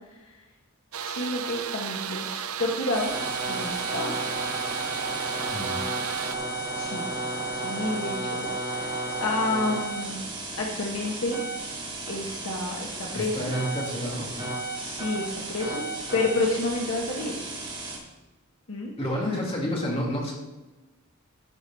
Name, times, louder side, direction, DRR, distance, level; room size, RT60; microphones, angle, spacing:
sound 1, 0.9-6.4, right 8 dB, 75° right, 0.6 m, -34 dB
voice 1, 1.0-3.1 3.5-4.1 6.7-7.1 7.5-10.3 10.6-11.4 12.1-13.5 14.7-15.8 16.1-17.4 18.7-18.9, left 2 dB, 65° left, -1 dB, 1.3 m, -30 dB
sound 2, 2.9-18.0, right 2 dB, 20° right, 3.0 m, -33 dB
voice 2, 5.5-5.9 13.2-14.5 19.0-20.3, equal, 25° left, -3 dB, 2.4 m, -30 dB
12.0 x 4.9 x 5.6 m, 1.1 s
head